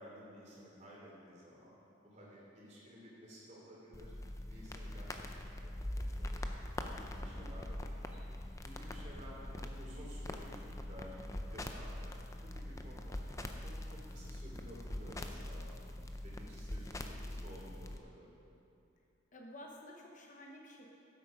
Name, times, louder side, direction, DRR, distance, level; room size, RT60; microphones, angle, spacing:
voice 1, 0.0-1.7 2.0-4.1 4.5-8.2 8.6-11.1 11.5-12.1 12.4-15.9 16.2-18.3, equal, 35° right, -5 dB, 3.0 m, -54 dB
sound 1, 3.9-18.0, left 1 dB, 15° left, 0.5 m, -43 dB
voice 2, 7.4-7.7 19.3-20.9, left 1 dB, 40° left, 0 dB, 1.1 m, -52 dB
13.0 x 8.2 x 5.1 m, 2.7 s
head